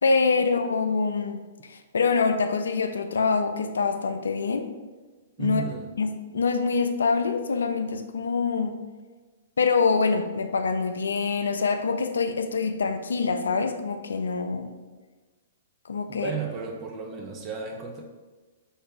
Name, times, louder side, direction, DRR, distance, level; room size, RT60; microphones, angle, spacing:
voice 1, 0.0-4.7 5.4-5.6 6.0-8.7 9.6-14.8 15.9-16.3, left 4 dB, 75° left, 7 dB, 0.3 m, -25 dB
voice 2, 5.4-5.9 16.1-18.0, right 6 dB, 30° right, 1 dB, 0.5 m, -34 dB
3.3 x 2.6 x 3.9 m, 1.3 s
figure-of-eight pair, 115°, 0 cm